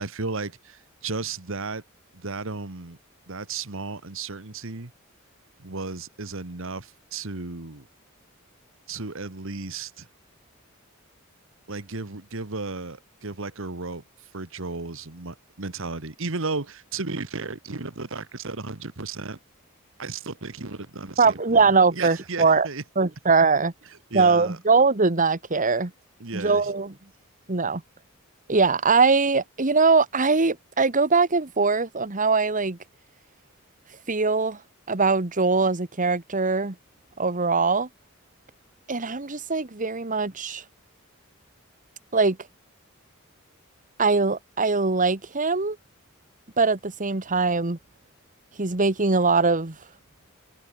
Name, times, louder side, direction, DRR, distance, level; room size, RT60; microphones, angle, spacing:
voice 1, 0.0-1.8 2.1-3.0 3.3-4.9 5.6-7.9 8.9-10.1 11.7-14.0 14.3-19.4 20.0-21.3 21.9-22.8 24.1-24.6 26.2-26.7, right 3 dB, 70° right, 1.7 m, -34 dB
voice 2, 21.2-22.7 23.0-23.7 24.1-25.9 26.3-26.9 27.5-27.8 28.5-32.8 34.1-34.6 34.9-36.7 37.2-37.9 38.9-40.6 42.1-42.4 44.0-45.8 46.6-47.8 48.6-49.8, right 4 dB, 40° right, 1.5 m, -21 dB
head